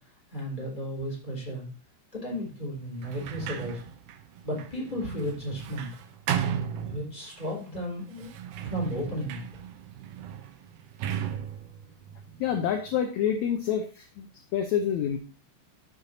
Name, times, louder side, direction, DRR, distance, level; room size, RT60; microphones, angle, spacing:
voice 1, 0.3-1.7 2.1-3.8 4.4-5.9 6.8-8.4 8.6-9.4, equal, 15° left, -3 dB, 4.3 m, -34 dB
Sliding door, 3.0-7.5 8.1-13.0, right 9 dB, 75° right, 2.3 m, -36 dB
voice 2, 12.4-14.3 14.5-15.2, left 8 dB, 70° left, 5 dB, 1.9 m, -27 dB
14.5 x 6.3 x 2.7 m, 0.38 s
omnidirectional pair, 3.8 m